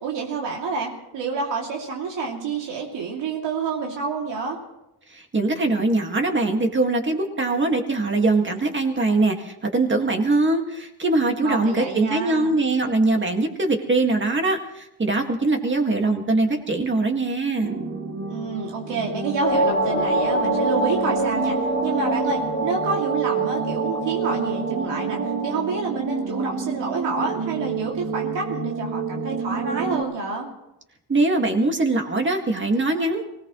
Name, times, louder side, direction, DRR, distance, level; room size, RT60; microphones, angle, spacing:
voice 1, 0.0-4.6 11.4-12.6 18.3-30.5, right 4 dB, 85° right, -1 dB, 2.8 m, -28 dB
voice 2, 5.1-17.8 31.1-33.2, right 2 dB, 25° right, 3 dB, 2.0 m, -22 dB
sound 1, 17.6-30.0, right 5 dB, 65° right, 3.0 m, -29 dB
sound 2, 19.4-25.6, right 1 dB, 20° left, 2.6 m, -26 dB
24.0 x 18.0 x 3.2 m, 0.88 s
cardioid pair, 135°, 42 cm